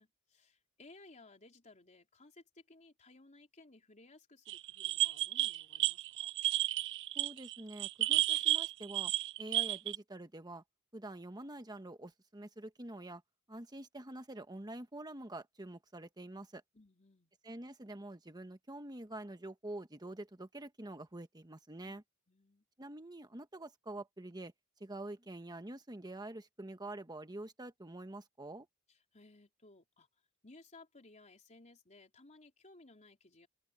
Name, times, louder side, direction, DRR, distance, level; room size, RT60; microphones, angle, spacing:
voice 1, 0.0-6.3 16.7-17.3 21.8-22.0 22.3-22.6 28.9-30.1 30.4-33.5, left 2 dB, 35° left, 3.7 m, -60 dB
sound 1, 4.5-10.0, right 15 dB, 55° right, 0.3 m, -32 dB
voice 2, 7.1-9.1 9.4-10.6 10.9-13.2 13.5-16.6 17.4-22.0 22.8-24.5 24.8-28.7, right 1 dB, 20° right, 1.4 m, -46 dB
open air
head